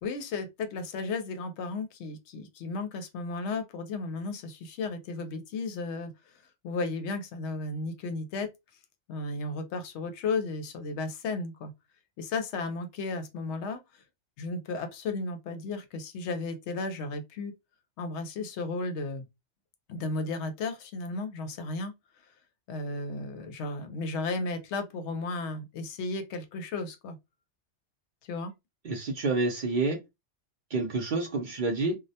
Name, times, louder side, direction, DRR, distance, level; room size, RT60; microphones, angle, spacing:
voice 1, 0.0-8.5 9.1-11.7 12.2-13.8 14.4-17.5 18.0-19.3 19.9-21.9 22.7-27.2 28.2-28.5, left 3 dB, 75° left, 0.8 m, -34 dB
voice 2, 28.9-30.0 30.7-32.0, right 3 dB, 55° right, 0.6 m, -28 dB
2.2 x 2.0 x 2.6 m
omnidirectional pair, 1.2 m